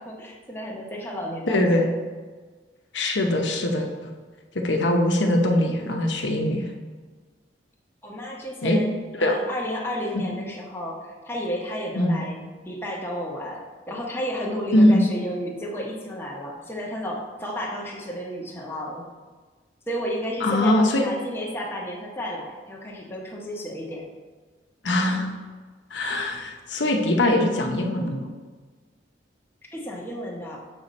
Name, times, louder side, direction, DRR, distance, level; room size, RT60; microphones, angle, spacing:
voice 1, 0.0-1.9 8.0-8.9 9.2-12.4 12.6-19.1 19.9-24.1 29.7-30.6, equal, 15° left, -3 dB, 1.0 m, -32 dB
voice 2, 1.5-1.9 2.9-4.1 4.6-6.7 8.6-8.8 9.2-9.4 12.0-12.2 14.7-15.0 20.4-21.0 24.8-25.3 25.9-28.3, left 1 dB, 90° left, 2 dB, 0.9 m, -21 dB
6.7 x 5.3 x 4.2 m, 1.4 s
head